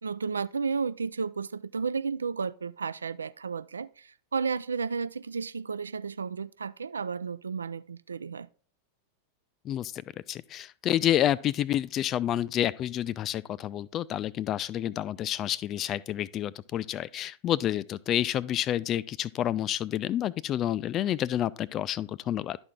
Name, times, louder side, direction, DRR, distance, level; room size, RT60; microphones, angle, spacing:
voice 1, 0.0-8.5, right 5 dB, 75° right, 0.3 m, -33 dB
voice 2, 9.6-10.0 10.3-22.6, left 11 dB, 30° left, 0.3 m, -29 dB
11.5 x 4.4 x 3.7 m
figure-of-eight pair, 90°, 0 cm